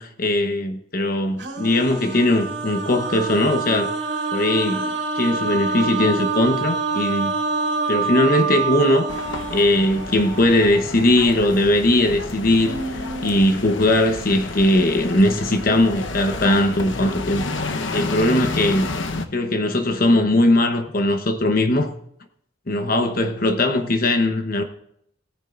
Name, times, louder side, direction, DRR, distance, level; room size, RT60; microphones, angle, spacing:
voice 1, 0.0-3.9 4.3-7.3 7.9-9.1 9.5-17.5 17.9-18.9 19.3-21.9 22.7-24.6, left 1 dB, 50° left, 1.0 m, -19 dB
sound 1, 1.4-11.0 12.2-12.3 12.5-13.3, right 4 dB, 65° right, 2.7 m, -27 dB
sound 2, 9.1-19.3, left 3 dB, 85° left, 1.0 m, -30 dB
17.5 x 9.9 x 2.6 m
head